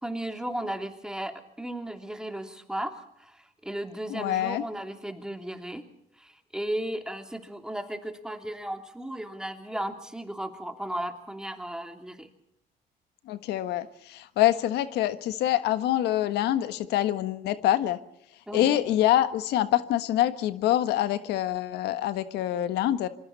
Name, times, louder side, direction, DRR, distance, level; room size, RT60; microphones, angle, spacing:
voice 1, 0.0-5.9 6.2-12.3 18.5-18.8, right 1 dB, 5° right, 6 dB, 2.9 m, -35 dB
voice 2, 4.1-4.6 13.3-18.0 18.5-23.1, left 13 dB, 85° left, 11 dB, 1.4 m, -25 dB
27.5 x 24.5 x 4.2 m, 0.77 s
cardioid pair, 110°, 17 cm